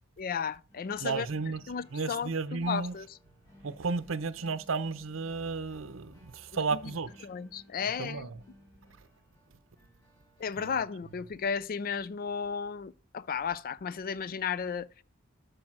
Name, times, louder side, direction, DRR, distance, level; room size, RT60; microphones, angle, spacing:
voice 1, 0.2-1.3 1.7-3.1 6.7-6.8 7.2-8.3 10.4-14.9, left 6 dB, 45° left, 0.4 m, -34 dB
sound 1, 0.7-11.6, equal, 20° left, 3.9 m, -59 dB
voice 2, 1.0-1.6 1.9-2.9 3.6-7.3 8.0-8.4 10.6-10.8, right 4 dB, 75° right, 0.8 m, -33 dB
12.5 x 4.9 x 6.0 m
head